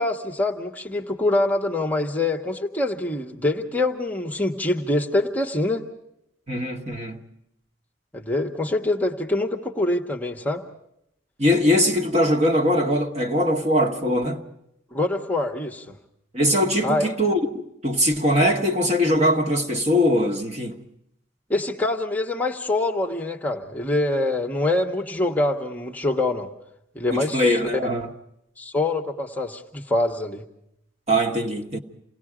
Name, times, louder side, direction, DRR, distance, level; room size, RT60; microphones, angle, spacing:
voice 1, 0.0-5.9 8.1-10.6 14.9-15.9 16.8-17.1 21.5-26.5 26.9-27.6 28.6-30.4, left 2 dB, 10° left, 1.2 m, -25 dB
voice 2, 6.5-7.2 11.4-14.4 16.3-17.4 17.8-20.8 27.1-28.1 31.1-31.8, equal, 30° right, 1.7 m, -21 dB
28.5 x 19.0 x 4.9 m
head